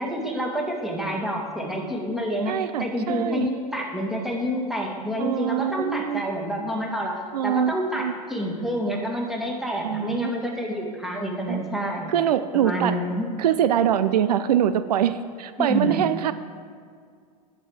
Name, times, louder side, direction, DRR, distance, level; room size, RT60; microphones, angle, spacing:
voice 1, 0.0-7.2 7.4-12.1 12.5-13.3 15.6-16.0, equal, ahead, -1 dB, 2.0 m, -28 dB
voice 2, 2.5-3.5 5.2-6.2 7.3-8.1 9.8-10.3 11.5-11.6 12.1-12.9 13.4-16.3, right 10 dB, 80° right, 13 dB, 0.5 m, -24 dB
10.5 x 7.5 x 4.9 m, 2.1 s
hypercardioid pair, 100°, 20 cm